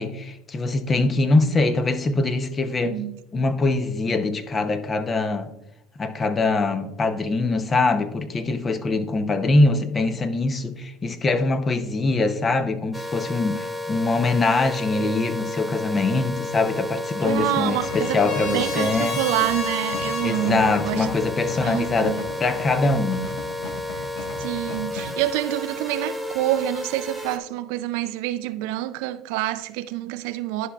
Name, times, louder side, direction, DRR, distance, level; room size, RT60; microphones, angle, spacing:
voice 1, 0.0-3.0 3.3-5.5 6.0-19.2 20.2-23.2, left 3 dB, 30° left, 0.7 m, -23 dB
voice 2, 2.8-3.2 17.2-18.2 18.5-21.1 21.6-22.2 24.4-30.7, right 14 dB, 75° right, 0.4 m, -27 dB
sound 1, 12.9-27.4, left 2 dB, 5° left, 0.9 m, -32 dB
Trumpet, 16.7-20.5, left 3 dB, 45° left, 1.9 m, -32 dB
sound 2, 17.3-25.1, left 2 dB, 75° left, 1.3 m, -37 dB
11.0 x 5.7 x 2.3 m
supercardioid pair, 95°, 0 cm